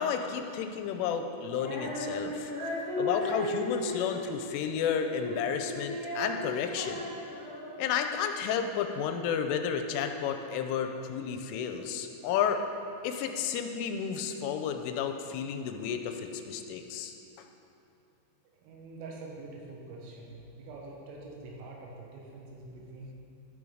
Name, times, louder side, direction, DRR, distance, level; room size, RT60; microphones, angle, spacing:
voice 1, 0.0-2.5 3.0-7.1 7.8-12.6 13.0-17.1, left 7 dB, 85° left, 6 dB, 3.0 m, -32 dB
Female singing, 1.5-7.9, left 1 dB, 35° right, 1.6 m, -36 dB
voice 2, 18.6-20.3 20.5-23.1, right 2 dB, 90° right, -1 dB, 4.1 m, -45 dB
12.0 x 7.0 x 5.0 m, 2.7 s
omnidirectional pair, 5.7 m